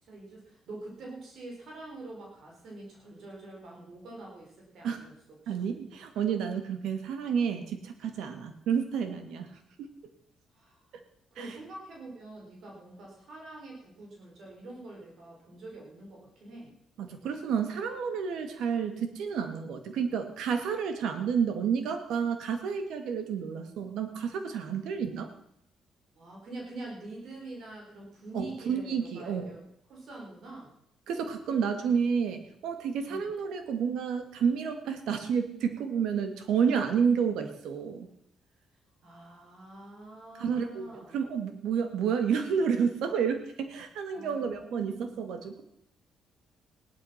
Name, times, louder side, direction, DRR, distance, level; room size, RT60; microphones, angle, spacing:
voice 1, 0.0-5.1 5.4-5.5 10.5-10.7 11.3-16.7 24.9-25.1 26.2-29.6 29.9-30.7 33.1-33.3 39.0-41.2 44.1-45.2, right 2 dB, 65° right, -1 dB, 5.4 m, -45 dB
voice 2, 5.5-9.5 9.8-9.9 10.9-11.0 11.4-11.5 17.0-25.3 28.3-29.5 31.1-38.1 40.4-45.6, right 6 dB, 80° right, 8 dB, 2.2 m, -30 dB
17.0 x 12.0 x 5.9 m, 0.74 s
cardioid pair, 90°, 0 cm